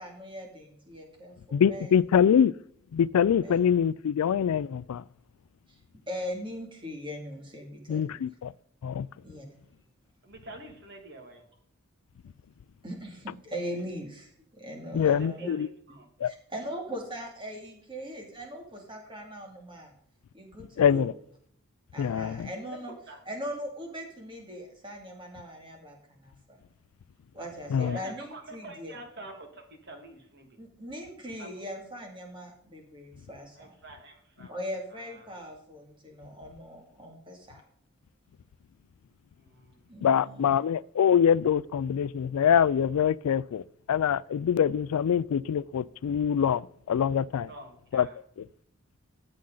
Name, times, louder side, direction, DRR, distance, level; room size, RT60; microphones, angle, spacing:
voice 1, 0.0-1.9 3.4-3.6 5.7-5.8 6.1-8.2 9.2-9.5 12.8-15.5 16.5-19.9 20.3-21.1 21.9-22.9 23.3-26.6 27.3-28.9 30.6-33.7 34.5-37.6 39.9-40.6, equal, 20° right, 2.4 m, -40 dB
voice 2, 1.5-2.5 2.9-5.0 7.9-8.5 8.8-9.1 14.9-15.7 20.8-21.1 22.0-22.5 27.7-28.0 40.0-43.6 43.9-47.5 47.9-48.1 48.4-48.5, left 8 dB, 85° left, 0.3 m, -24 dB
voice 3, 10.2-11.5 15.1-16.1 22.9-23.2 27.4-27.5 27.8-30.6 31.4-31.5 33.6-34.5 34.9-35.3 39.3-39.9 47.4-48.2, right 1 dB, 50° right, 2.1 m, -47 dB
14.0 x 7.7 x 3.8 m
head